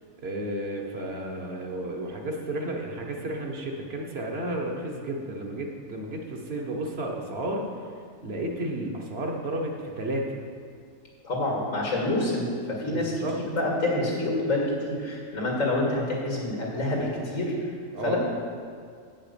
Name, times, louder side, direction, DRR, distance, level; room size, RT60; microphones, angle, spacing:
voice 1, 0.2-7.7 8.2-10.4 12.9-13.3 17.9-18.2, right 1 dB, 55° right, 0 dB, 1.2 m, -32 dB
voice 2, 11.2-17.5 18.0-18.2, left 1 dB, 85° left, -2 dB, 2.5 m, -27 dB
8.6 x 5.9 x 6.8 m, 2.2 s
omnidirectional pair, 1.4 m